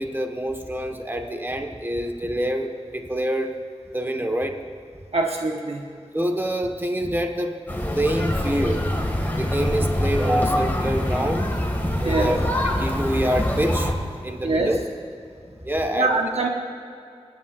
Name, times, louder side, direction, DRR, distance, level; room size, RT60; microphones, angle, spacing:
voice 1, 0.0-3.5 3.9-4.5 6.1-7.6 7.9-11.5 11.8-12.4 12.6-14.8 15.6-16.1, equal, 20° right, 3 dB, 1.4 m, -26 dB
voice 2, 5.1-5.8 12.0-12.3 14.4-14.7 15.9-16.5, right 3 dB, 70° right, 1 dB, 1.2 m, -23 dB
sound 1, 7.7-13.9, left 1 dB, 15° left, 2.0 m, -25 dB
24.0 x 10.5 x 2.5 m, 2.3 s
cardioid pair, 45°, 11 cm